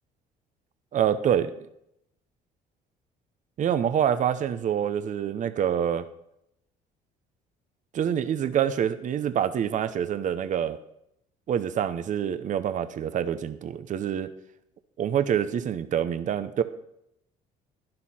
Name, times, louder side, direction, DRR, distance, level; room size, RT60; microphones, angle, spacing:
voice 1, 0.9-1.5 3.6-6.0 7.9-10.8 11.5-14.3 15.0-16.6, right 9 dB, 50° right, 12 dB, 0.8 m, -26 dB
12.0 x 11.0 x 4.3 m, 0.77 s
cardioid pair, 110°, 17 cm